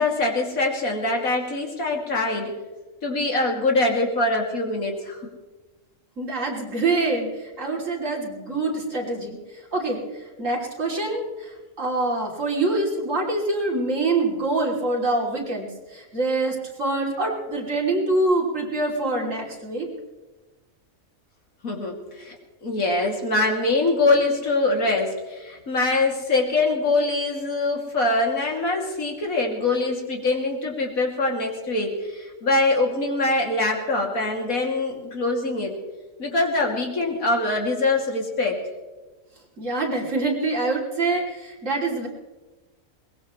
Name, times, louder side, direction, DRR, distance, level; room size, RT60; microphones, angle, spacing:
voice 1, 0.0-2.5 3.0-5.3 21.6-22.4 22.6-35.7 36.2-38.6, left 2 dB, 75° left, 0 dB, 3.1 m, -23 dB
voice 2, 6.2-19.9 39.6-42.1, right 2 dB, 60° right, -2 dB, 3.5 m, -25 dB
22.0 x 20.0 x 3.2 m, 1.2 s
omnidirectional pair, 1.5 m